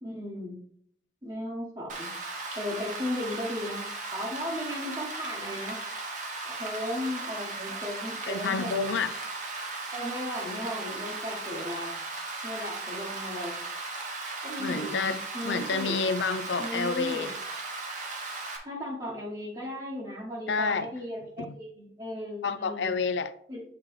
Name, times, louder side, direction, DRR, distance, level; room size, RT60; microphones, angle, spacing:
voice 1, 0.0-0.6 1.2-2.1 2.6-3.9 4.1-5.8 6.4-8.9 9.9-12.0 12.4-13.6 14.4-16.0 16.6-17.3 18.6-22.9 23.5-23.6, left 1 dB, 25° right, 1.1 m, -36 dB
Rain, 1.9-18.6, right 3 dB, 45° right, 1.1 m, -37 dB
voice 2, 8.3-9.3 14.6-17.3 20.5-20.9 21.4-21.5 22.4-23.3, left 4 dB, 80° left, 0.4 m, -29 dB
8.1 x 3.6 x 3.2 m
head